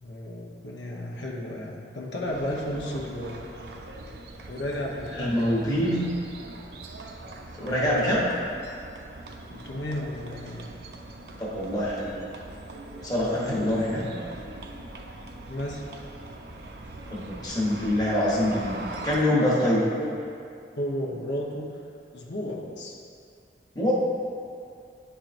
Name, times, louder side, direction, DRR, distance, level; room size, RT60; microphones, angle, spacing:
voice 1, 0.0-3.3 4.5-6.0 9.5-10.7 13.3-13.8 15.5-15.9 20.0-20.1 20.8-21.7 22.1-23.0, left 1 dB, 85° left, -3 dB, 0.9 m, -33 dB
sound 1, 2.2-19.2, right 2 dB, 70° right, 0.5 m, -42 dB
voice 2, 5.2-6.0 7.5-8.2 11.4-12.1 13.0-14.0 17.1-19.9 23.7-23.9, left 1 dB, 20° left, -6 dB, 1.1 m, -25 dB
10.0 x 4.6 x 2.6 m, 2.4 s
head